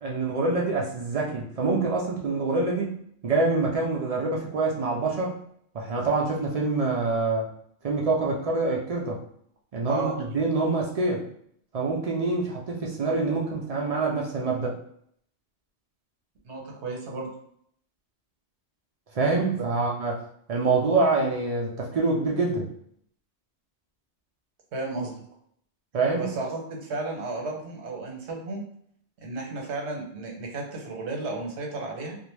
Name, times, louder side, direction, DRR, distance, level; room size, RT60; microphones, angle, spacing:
voice 1, 0.0-5.4 5.7-7.5 7.8-9.2 9.7-11.2 11.7-14.8 19.1-20.2 20.5-22.7 25.9-26.3, right 3 dB, 60° right, -1 dB, 0.4 m, -26 dB
voice 2, 16.4-17.3 19.5-19.6 24.7-25.2 26.2-28.6 29.2-32.2, right 3 dB, 80° right, 1 dB, 1.0 m, -33 dB
2.5 x 2.1 x 3.1 m, 0.68 s
omnidirectional pair, 1.1 m